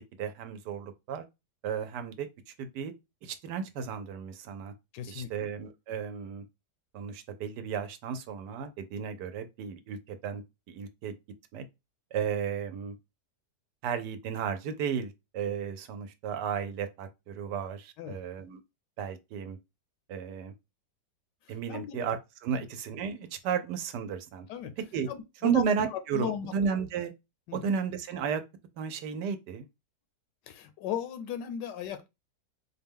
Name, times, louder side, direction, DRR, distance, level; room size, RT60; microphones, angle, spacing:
voice 1, 0.2-1.2 1.6-2.9 3.2-4.7 5.1-6.4 6.9-11.1 11.5-11.7 12.1-12.9 13.8-18.6 19.0-19.6 20.1-20.5 21.5-24.5 24.9-25.1 25.4-27.1 27.5-28.4 28.8-29.7, right 7 dB, 80° right, 1.2 m, -33 dB
voice 2, 4.9-5.3 18.0-18.2 21.5-22.0 22.5-22.6 24.5-24.7 25.1-25.6 25.9-26.5 27.5-27.7 30.5-32.1, left 9 dB, 85° left, 1.3 m, -36 dB
4.3 x 2.2 x 3.5 m
omnidirectional pair, 1.8 m